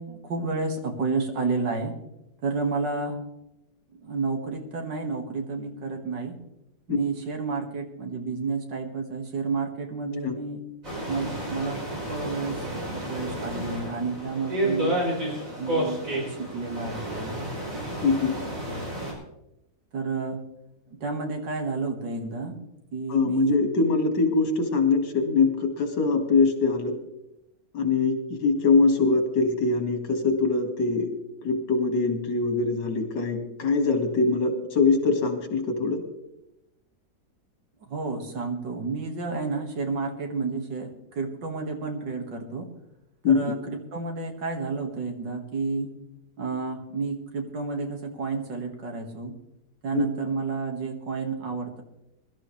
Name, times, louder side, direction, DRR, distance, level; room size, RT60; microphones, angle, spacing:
voice 1, 0.0-1.9 2.4-3.2 4.0-6.4 6.9-10.6 11.1-11.8 12.1-15.0 15.6-17.4 19.9-20.4 21.0-22.6 22.9-23.6 37.9-42.6 43.3-45.9 46.4-49.3 49.8-51.8, right 4 dB, 80° right, 3 dB, 2.4 m, -30 dB
sound 1, 10.8-19.1, right 1 dB, 45° right, 5.3 m, -31 dB
voice 2, 18.0-18.4 23.1-26.9 27.7-31.1 31.4-36.0 43.2-43.6 49.9-50.1, left 4 dB, 75° left, 5 dB, 2.6 m, -23 dB
21.5 x 12.5 x 3.2 m, 0.88 s
omnidirectional pair, 1.9 m